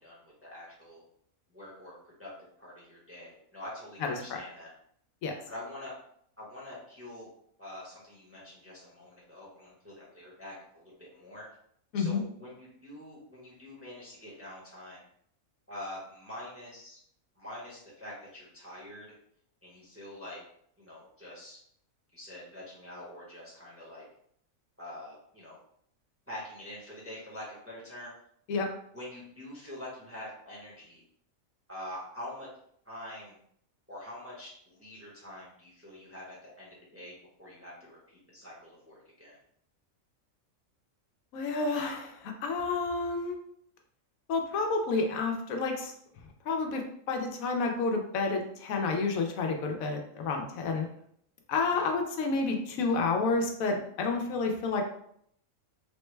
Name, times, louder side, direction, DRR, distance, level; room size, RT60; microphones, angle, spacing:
voice 1, 0.0-1.0 1.5-2.3 2.6-4.7 5.5-5.9 6.4-7.3 7.6-11.5 11.9-15.0 15.7-17.0 17.4-19.1 19.6-20.4 20.8-21.6 22.1-24.0 24.8-25.6 26.3-28.1 28.9-31.0 31.7-32.5 32.8-33.4 33.9-38.0 38.3-39.4 51.7-51.9, left 1 dB, 10° right, -6 dB, 0.8 m, -45 dB
voice 2, 4.0-4.4 5.2-5.3 11.9-12.2 28.5-28.7 41.3-43.4 44.3-45.9 46.4-50.9 51.5-54.8, left 4 dB, 80° left, 3 dB, 1.0 m, -30 dB
3.5 x 2.1 x 3.2 m, 0.68 s
omnidirectional pair, 1.4 m